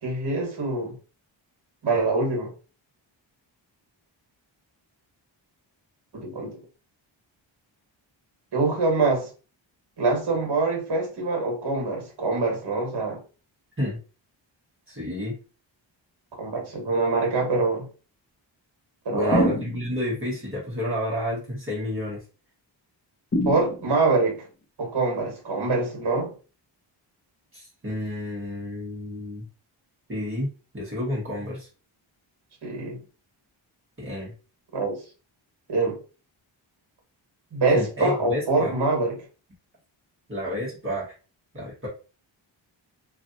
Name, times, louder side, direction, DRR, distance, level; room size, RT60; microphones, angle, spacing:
voice 1, 0.0-0.9 1.8-2.5 6.1-6.6 8.5-9.3 10.0-13.2 16.4-17.8 19.0-19.6 23.4-24.4 24.8-26.3 32.6-33.0 34.7-35.0 35.7-36.0 37.5-39.2, right 3 dB, 55° right, 1.6 m, -24 dB
voice 2, 14.9-15.4 19.1-22.2 27.5-29.4 30.1-31.7 34.0-34.3 37.7-38.7 40.3-41.2 41.5-41.9, left 1 dB, 25° right, 1.5 m, -30 dB
sound 1, 19.3-20.2 23.3-24.2, left 1 dB, 30° left, 1.0 m, -26 dB
3.2 x 2.5 x 2.6 m
wide cardioid pair, 100°, 47 cm